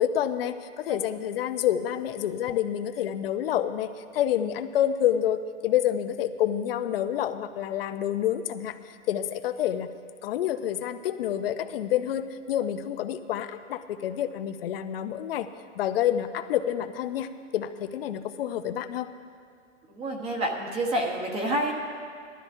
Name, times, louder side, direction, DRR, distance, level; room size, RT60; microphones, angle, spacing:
voice 1, 0.0-8.8 9.1-9.9 10.2-15.5 15.8-19.1, left 10 dB, 50° left, 10 dB, 0.7 m, -28 dB
voice 2, 19.9-21.7, right 1 dB, 15° right, 1 dB, 1.1 m, -28 dB
19.0 x 13.0 x 2.7 m, 2.1 s
hypercardioid pair, 150°, 37 cm